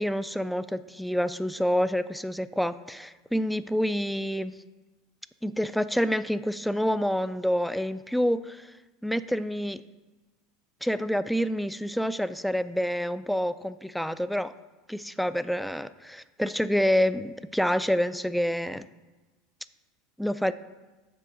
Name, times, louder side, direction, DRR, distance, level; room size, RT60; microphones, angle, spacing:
voice 1, 0.0-4.5 5.4-8.7 9.0-9.8 10.8-14.5 14.9-18.9 20.2-20.5, equal, ahead, 14 dB, 0.3 m, -27 dB
6.6 x 6.3 x 3.9 m, 1.2 s
hypercardioid pair, 90°, 0 cm